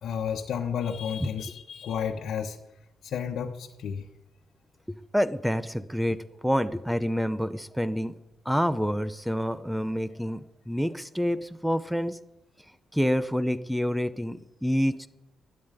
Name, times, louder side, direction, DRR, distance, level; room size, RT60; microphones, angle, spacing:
voice 1, 0.0-2.6 3.0-4.0, left 7 dB, 65° left, 0 dB, 1.2 m, -31 dB
voice 2, 5.1-8.2 8.5-12.2 12.9-15.1, equal, ahead, 14 dB, 0.6 m, -27 dB
12.5 x 9.7 x 9.0 m, 0.93 s
cardioid pair, 135°, 0 cm